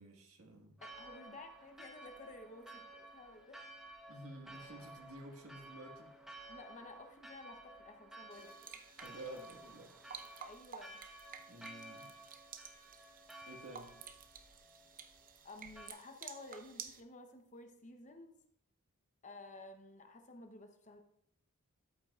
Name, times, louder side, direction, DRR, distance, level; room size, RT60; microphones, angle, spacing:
voice 1, 0.0-0.8 4.1-6.1 9.0-9.9 11.5-12.1 13.5-14.0, right 1 dB, 70° right, 2 dB, 1.7 m, -51 dB
voice 2, 0.8-3.7 6.5-9.0 10.4-11.0 15.4-18.4 19.2-21.0, left 2 dB, 35° left, 5 dB, 0.9 m, -53 dB
Church bell, 0.8-15.9, right 1 dB, ahead, 1.0 m, -54 dB
sound 1, 8.3-17.0, right 7 dB, 40° right, 0.7 m, -53 dB
13.0 x 8.2 x 2.4 m, 0.72 s
head